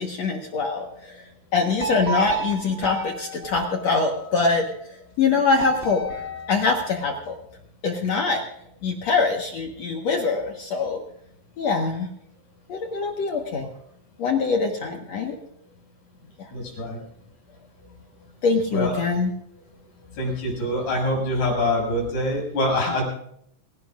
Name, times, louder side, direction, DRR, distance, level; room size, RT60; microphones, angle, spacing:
voice 1, 0.0-4.7 5.2-6.0 6.5-7.4 7.8-8.4 8.8-11.0 11.6-12.1 12.7-13.7 14.2-15.4 18.4-19.3, left 4 dB, 60° left, 2 dB, 1.9 m, -24 dB
sound 1, 1.8-4.5 5.6-7.3, right 1 dB, 15° right, 2.6 m, -32 dB
voice 2, 16.5-17.0 18.7-19.0 20.2-23.0, left 1 dB, 75° left, -1 dB, 8.7 m, -25 dB
28.0 x 17.0 x 2.5 m, 0.71 s
omnidirectional pair, 4.8 m